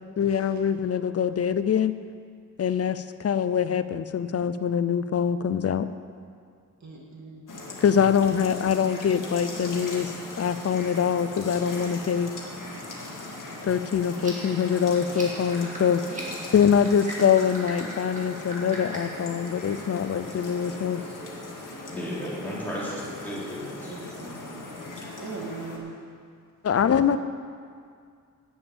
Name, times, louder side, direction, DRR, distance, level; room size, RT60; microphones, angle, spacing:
voice 1, 0.2-1.9 2.6-5.9 7.8-12.3 13.6-16.0 16.5-21.0 26.6-27.2, left 7 dB, 50° left, 12 dB, 0.5 m, -24 dB
voice 2, 6.8-7.4 16.1-16.5 23.9-24.3 25.2-26.0, right 3 dB, 60° right, -2 dB, 2.1 m, -39 dB
sound 1, 7.5-25.8, left 2 dB, 70° left, 1.9 m, -39 dB
sound 2, 14.1-19.2, right 1 dB, 25° right, 2.3 m, -40 dB
voice 3, 21.9-24.6, equal, 5° left, -8 dB, 3.5 m, -35 dB
11.0 x 7.2 x 8.7 m, 2.2 s
wide cardioid pair, 175°, 32 cm